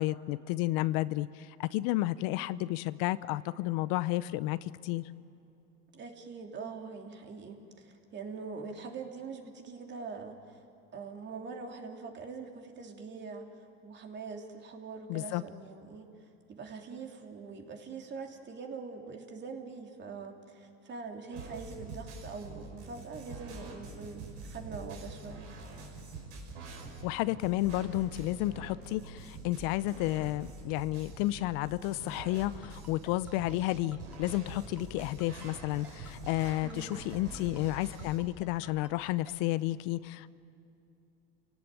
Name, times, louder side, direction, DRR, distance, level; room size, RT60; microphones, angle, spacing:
voice 1, 0.0-5.0 15.1-15.4 27.0-40.3, left 17 dB, 65° left, 16 dB, 0.7 m, -32 dB
voice 2, 5.9-10.6 10.9-25.5 36.6-36.9, right 4 dB, 35° right, 3 dB, 3.2 m, -43 dB
sound 1, 21.3-38.2, right 3 dB, 85° right, 5.8 m, -46 dB
Ringtone, 32.6-39.3, right 1 dB, 5° right, 2.8 m, -53 dB
29.5 x 17.5 x 9.1 m, 2.9 s
supercardioid pair, 120°, 32 cm